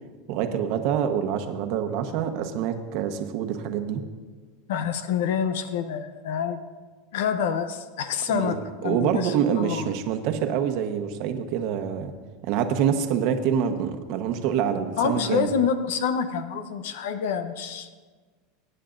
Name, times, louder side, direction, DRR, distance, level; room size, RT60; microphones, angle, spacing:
voice 1, 0.3-4.0 8.3-8.5 8.8-12.1 12.4-15.5, right 8 dB, 50° right, 7 dB, 1.1 m, -26 dB
voice 2, 4.7-6.6 7.1-8.6 8.8-9.9 15.0-17.9, left 7 dB, 80° left, 10 dB, 0.8 m, -27 dB
22.5 x 10.0 x 2.6 m, 1.4 s
supercardioid pair, 160°, 0 cm